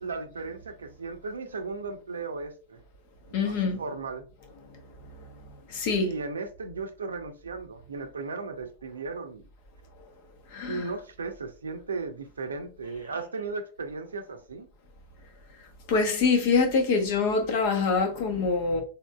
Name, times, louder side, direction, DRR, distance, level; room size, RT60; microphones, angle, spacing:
voice 1, 0.0-2.8 3.4-4.2 6.0-9.4 10.7-14.7, right 4 dB, 70° right, 0.6 m, -36 dB
voice 2, 3.3-3.8 5.7-6.1 10.5-10.9 15.9-18.8, left 4 dB, 50° left, 1.0 m, -25 dB
3.8 x 3.7 x 2.2 m
figure-of-eight pair, 90°, 0 cm